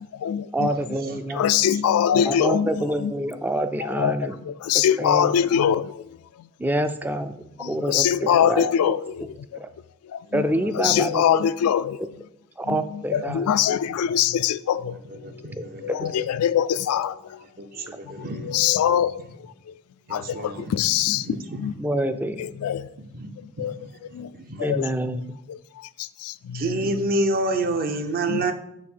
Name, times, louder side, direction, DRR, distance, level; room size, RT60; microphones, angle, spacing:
voice 1, 0.0-0.7 1.3-3.1 3.8-6.0 6.4-6.5 7.6-9.3 10.1-10.4 10.8-12.0 12.7-15.0 15.3-15.4 15.8-17.4 17.8-19.7 20.1-21.3 21.6-21.7 22.4-22.9 23.6-23.9 24.1-24.3 24.6-24.9 25.5-26.9 28.3-28.4, left 9 dB, 75° left, 0.3 m, -24 dB
voice 2, 0.5-1.5 2.2-4.4 4.7-5.3 6.6-7.4 7.7-8.9 9.6-9.7 10.3-11.4 12.6-13.5 15.9-16.0 21.8-22.5 24.6-25.4, right 1 dB, 10° right, 0.4 m, -27 dB
voice 3, 15.1-16.2 17.6-18.5 20.1-20.8 21.2-21.7 23.0-23.3 23.6-23.9 24.3-24.7 26.5-28.5, right 2 dB, 45° right, 0.6 m, -28 dB
6.6 x 3.5 x 6.0 m
head